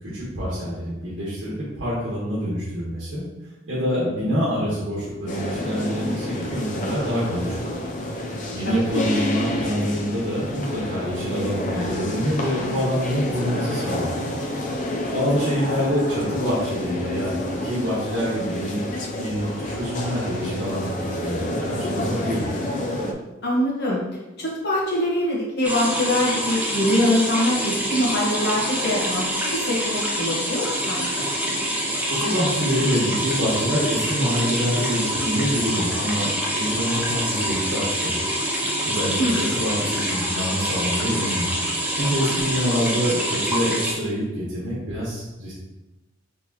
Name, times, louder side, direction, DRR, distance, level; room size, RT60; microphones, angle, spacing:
voice 1, 0.0-3.2 3.7-7.7 8.5-14.2 15.1-22.4 32.2-38.4 38.8-45.5, equal, 65° right, -8 dB, 1.4 m, -26 dB
sound 1, 5.3-23.1, left 1 dB, 40° left, 0.5 m, -29 dB
voice 2, 23.4-24.0 24.4-29.2 29.5-31.2 39.2-39.5, left 1 dB, 60° left, -5 dB, 1.3 m, -23 dB
sound 2, 25.6-43.9, equal, 10° right, 0.6 m, -26 dB
4.5 x 3.5 x 2.9 m, 1.0 s
head